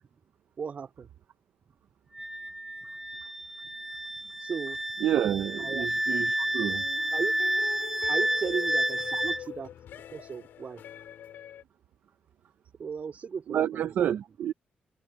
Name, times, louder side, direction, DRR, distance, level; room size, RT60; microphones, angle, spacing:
voice 1, 0.6-1.1 4.4-4.8 5.6-5.9 7.1-7.3 8.1-9.7 10.1-10.8 12.8-13.9, right 6 dB, 45° right, 4.5 m, -35 dB
Wind instrument woodwind instrument, 2.1-9.4, right 1 dB, 5° right, 2.1 m, -30 dB
voice 2, 5.0-6.8 13.5-14.5, right 10 dB, 70° right, 0.9 m, -29 dB
sound 1, 6.4-11.6, left 10 dB, 80° left, 5.8 m, -43 dB
cardioid pair, 120°, 3 cm